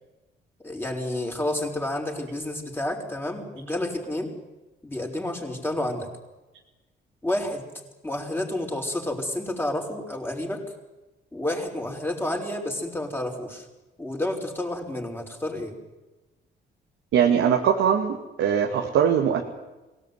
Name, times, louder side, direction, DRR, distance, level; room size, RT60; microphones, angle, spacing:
voice 1, 0.6-4.3 4.8-6.1 7.2-7.6 8.0-10.6 11.3-13.7 14.0-15.8, left 1 dB, 10° left, 1 dB, 5.4 m, -30 dB
voice 2, 17.1-19.4, right 8 dB, 85° right, 2 dB, 2.1 m, -21 dB
23.0 x 18.0 x 9.6 m, 1.1 s
cardioid pair, 90°, 20 cm